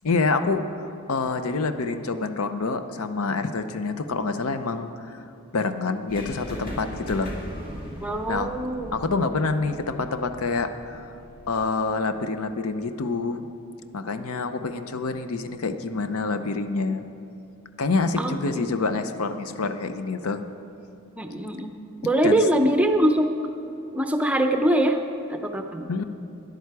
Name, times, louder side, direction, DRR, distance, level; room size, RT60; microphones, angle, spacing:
voice 1, 0.0-5.2 5.5-7.3 8.3-8.5 8.9-11.1 11.5-13.5 13.9-17.1 17.8-20.4 22.2-22.4 25.9-26.0, left 3 dB, 85° left, 9 dB, 0.7 m, -27 dB
sound 1, 6.1-12.0, equal, 40° left, 2.3 m, -39 dB
voice 2, 8.0-8.9 18.2-18.7 21.2-21.7 22.0-23.3 23.9-25.0 25.3-25.9, right 1 dB, 5° right, 5 dB, 0.6 m, -23 dB
13.0 x 10.5 x 4.7 m, 2.7 s
head